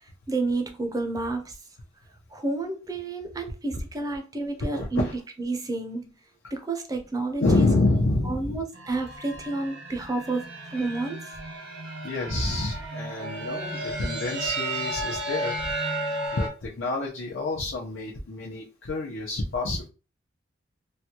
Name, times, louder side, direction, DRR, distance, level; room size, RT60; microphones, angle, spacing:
voice 1, 0.3-1.5 2.3-5.1 5.4-6.1 6.5-7.7 8.3-11.4, right 3 dB, 20° right, 0.4 m, -30 dB
voice 2, 4.7-5.1 7.4-8.6 10.9-11.0 12.0-15.7 16.3-19.9, left 2 dB, 85° left, 0.7 m, -27 dB
sound 1, 8.7-16.5, right 2 dB, 85° right, 1.3 m, -33 dB
3.3 x 2.2 x 2.8 m
head